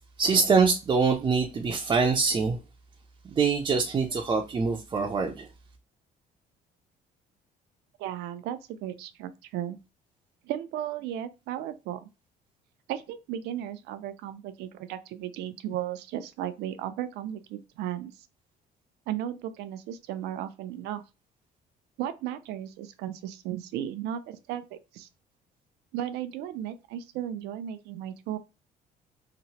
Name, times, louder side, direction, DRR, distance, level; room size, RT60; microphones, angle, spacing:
voice 1, 0.2-2.6 3.3-5.5, right 5 dB, 25° right, 0.4 m, -24 dB
voice 2, 8.0-9.8 10.4-12.1 12.9-18.1 19.1-21.0 22.0-25.1 25.9-28.4, right 11 dB, 85° right, 0.4 m, -35 dB
2.9 x 2.0 x 2.7 m
cardioid pair, 110°, 17 cm